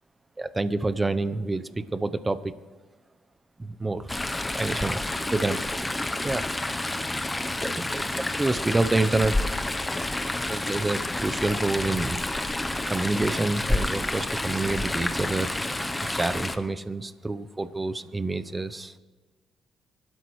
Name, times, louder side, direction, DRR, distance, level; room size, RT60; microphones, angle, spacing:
voice 1, 0.4-2.5 3.6-4.1 4.6-5.0 5.3-5.6 5.9-6.4 7.6-8.0 8.4-9.4 10.3-12.2 12.9-15.5 16.0-18.9, right 2 dB, 20° right, 14 dB, 0.7 m, -28 dB
Chatter / Stream, 4.1-16.6, left 2 dB, 15° left, 0.8 m, -29 dB
24.5 x 12.5 x 3.2 m, 1.3 s
cardioid pair, 90°, 0 cm